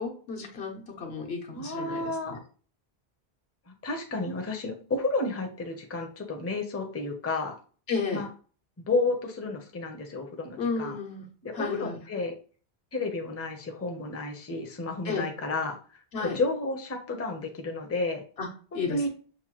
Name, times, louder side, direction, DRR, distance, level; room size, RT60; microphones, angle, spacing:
voice 1, 0.0-2.4 7.9-8.2 10.6-11.3 11.5-12.0 15.0-15.3 16.1-16.4 18.4-19.1, left 4 dB, 75° left, 2 dB, 1.2 m, -33 dB
voice 2, 1.5-2.4 3.8-7.6 8.1-8.3 8.8-11.0 11.4-12.3 12.9-16.0 16.3-18.2 18.7-19.1, left 3 dB, 20° left, 3 dB, 0.5 m, -31 dB
6.1 x 2.2 x 2.9 m, 0.40 s
omnidirectional pair, 1.0 m